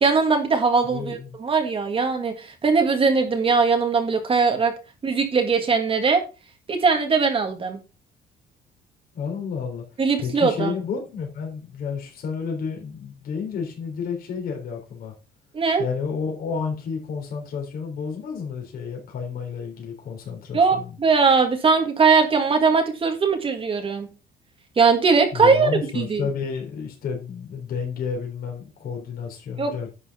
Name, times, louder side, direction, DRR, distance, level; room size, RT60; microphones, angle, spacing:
voice 1, 0.0-4.7 5.0-6.2 6.7-7.8 10.0-10.7 15.5-15.8 20.5-24.1 24.8-25.7 25.9-26.3 29.6-29.7, right 5 dB, 35° right, 5 dB, 1.6 m, -20 dB
voice 2, 0.9-1.4 9.1-9.8 10.2-15.1 15.8-20.9 25.3-29.9, left 6 dB, 60° left, 1 dB, 3.9 m, -31 dB
11.0 x 6.1 x 4.2 m, 0.32 s
cardioid pair, 110°, 17 cm